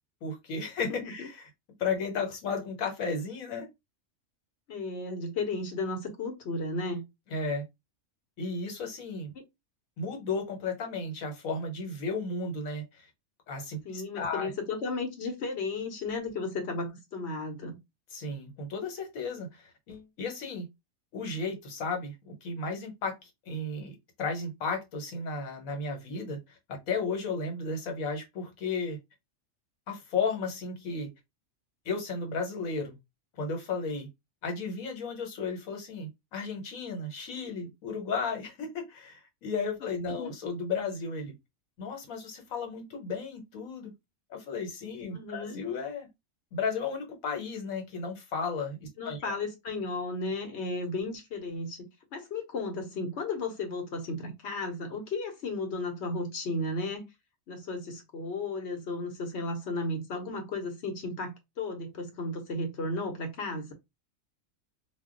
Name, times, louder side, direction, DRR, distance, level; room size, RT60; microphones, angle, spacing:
voice 1, 0.2-1.5 1.8-3.7 7.3-7.6 8.4-9.3 10.0-13.1 13.5-14.5 18.1-20.7 21.1-29.0 29.9-31.1 31.8-32.9 33.4-34.1 34.4-41.3 41.8-43.9 44.3-46.1 46.5-49.4, left 4 dB, 75° left, 1.3 m, -34 dB
voice 2, 0.9-1.3 4.7-7.0 9.4-9.5 13.8-17.8 40.2-40.3 45.1-45.6 49.0-57.1 57.5-63.7, left 2 dB, 55° left, 1.0 m, -34 dB
2.4 x 2.2 x 3.7 m
omnidirectional pair, 1.4 m